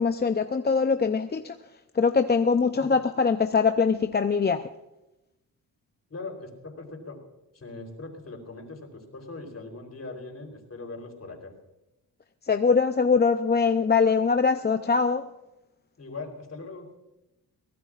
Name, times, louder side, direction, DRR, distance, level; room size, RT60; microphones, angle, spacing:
voice 1, 0.0-1.6 1.9-4.7 12.4-15.3, left 5 dB, 25° left, 7 dB, 0.6 m, -23 dB
voice 2, 6.1-7.2 7.5-11.5 16.0-16.9, left 3 dB, 40° left, 3 dB, 3.8 m, -40 dB
24.0 x 17.0 x 2.5 m, 0.97 s
cardioid pair, 95°, 38 cm